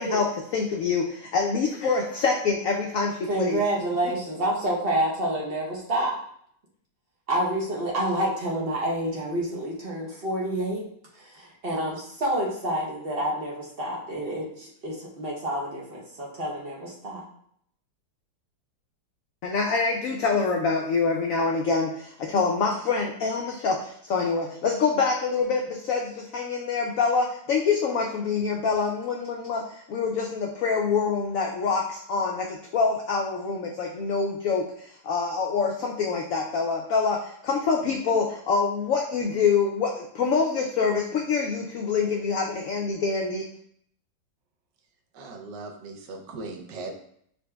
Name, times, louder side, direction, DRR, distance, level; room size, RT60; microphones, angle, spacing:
voice 1, 0.0-3.6 4.0-4.1 19.4-43.5, left 5 dB, 85° left, 1 dB, 0.7 m, -26 dB
voice 2, 3.3-6.2 7.3-10.8 11.1-17.3, right 1 dB, 45° right, -4 dB, 0.7 m, -28 dB
voice 3, 45.1-46.9, right 3 dB, 75° right, 3 dB, 1.3 m, -38 dB
4.9 x 4.0 x 2.2 m, 0.66 s
omnidirectional pair, 2.0 m